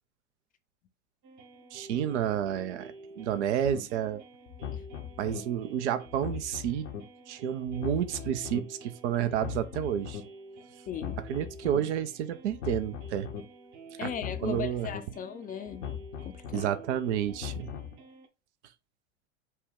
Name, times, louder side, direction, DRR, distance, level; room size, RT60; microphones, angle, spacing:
sound 1, 1.2-18.3, right 3 dB, 45° right, 1.1 m, -50 dB
voice 1, 1.7-4.2 5.2-6.9 7.3-10.2 11.2-13.3 14.0-14.1 14.4-14.9 16.5-17.7, right 10 dB, 60° right, 0.6 m, -30 dB
sound 2, 3.6-3.8 4.5-5.4 6.1-7.0 7.7-8.6 9.3-10.2 10.9-11.8 12.5-13.4 14.1-15.0 15.7-16.6 17.3-17.9, left 9 dB, 70° left, 0.9 m, -39 dB
voice 2, 10.9-11.2 14.0-15.9 16.2-16.7, left 7 dB, 25° left, 0.5 m, -37 dB
5.5 x 2.2 x 3.4 m
figure-of-eight pair, 80°, 38 cm